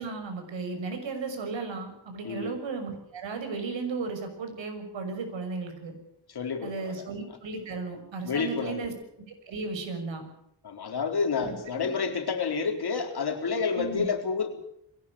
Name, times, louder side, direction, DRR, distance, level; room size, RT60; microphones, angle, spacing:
voice 1, 0.0-5.9 6.6-10.2 11.4-11.9 13.7-14.1, right 4 dB, 80° right, 6 dB, 6.2 m, -35 dB
voice 2, 6.3-7.0 8.2-8.9 10.6-14.5, left 5 dB, 60° left, 4 dB, 4.0 m, -29 dB
22.5 x 17.5 x 8.6 m, 0.74 s
wide cardioid pair, 125°, 44 cm